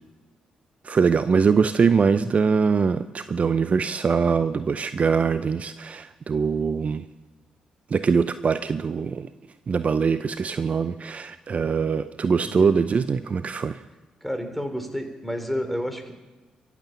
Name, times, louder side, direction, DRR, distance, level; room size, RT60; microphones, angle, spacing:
voice 1, 0.8-7.1 7.9-9.3 9.7-13.8, right 5 dB, 45° right, 13 dB, 0.6 m, -22 dB
voice 2, 14.2-16.1, equal, 5° left, 7 dB, 3.3 m, -30 dB
23.5 x 8.3 x 7.3 m, 1.2 s
hypercardioid pair, 40°, 3 cm